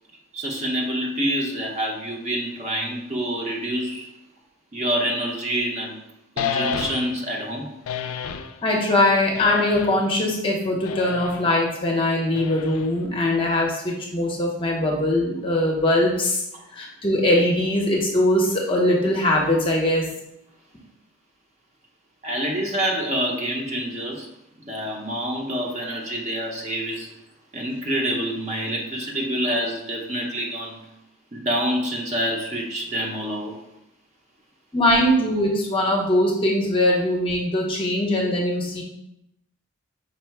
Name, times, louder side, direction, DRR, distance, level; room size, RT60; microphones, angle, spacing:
voice 1, 0.3-4.1 4.7-6.0 6.4-7.7 16.5-16.6 22.2-24.3 24.7-27.1 27.5-30.8 31.3-33.6 35.1-35.2, equal, 30° right, -1 dB, 0.7 m, -27 dB
sound 1, 6.4-7.3 7.9-8.5 9.3-10.1 10.8-11.5 12.4-13.1, left 7 dB, 80° left, 0.4 m, -30 dB
voice 2, 8.6-16.4 16.7-20.0 34.7-38.8, left 1 dB, 25° left, -1 dB, 0.6 m, -21 dB
5.3 x 2.0 x 4.5 m, 0.84 s
head